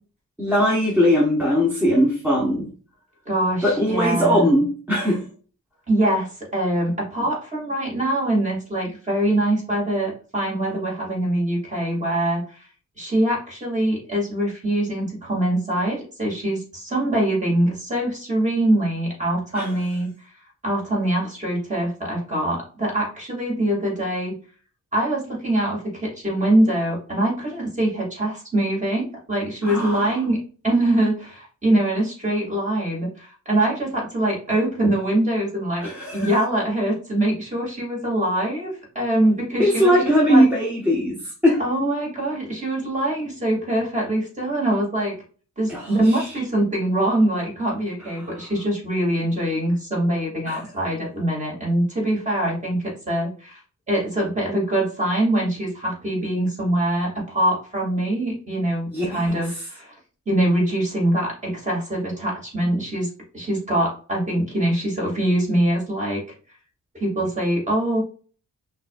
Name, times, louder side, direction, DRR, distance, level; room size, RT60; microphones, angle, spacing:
voice 1, 0.4-2.7 3.6-5.2 19.5-19.7 29.6-30.2 35.8-36.4 39.6-41.6 45.7-46.3 48.2-48.3 50.5-50.6 58.9-59.6, equal, 5° right, -5 dB, 0.9 m, -20 dB
voice 2, 3.3-4.5 5.9-12.6 13.0-20.1 20.6-24.3 24.9-30.4 30.6-39.9 40.2-40.5 41.6-45.1 45.6-53.6 53.9-58.9 59.1-59.9 60.3-63.1 63.3-66.2 66.9-68.0, right 1 dB, 25° right, -4 dB, 2.0 m, -23 dB
6.0 x 2.6 x 2.3 m, 0.40 s
wide cardioid pair, 135°, 31 cm